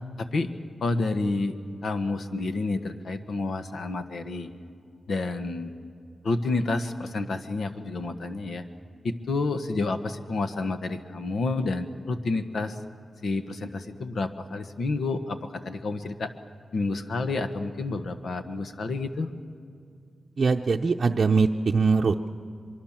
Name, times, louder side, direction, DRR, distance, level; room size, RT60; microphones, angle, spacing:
voice 1, 0.2-0.5 0.8-1.6 1.8-4.5 5.1-5.7 6.2-8.6 9.0-12.8 13.2-16.3 16.7-19.3, left 3 dB, 75° left, 8 dB, 1.4 m, -29 dB
voice 2, 20.4-22.3, right 4 dB, 50° right, 1 dB, 0.7 m, -22 dB
24.0 x 24.0 x 7.4 m, 2.3 s
wide cardioid pair, 95°, 0 cm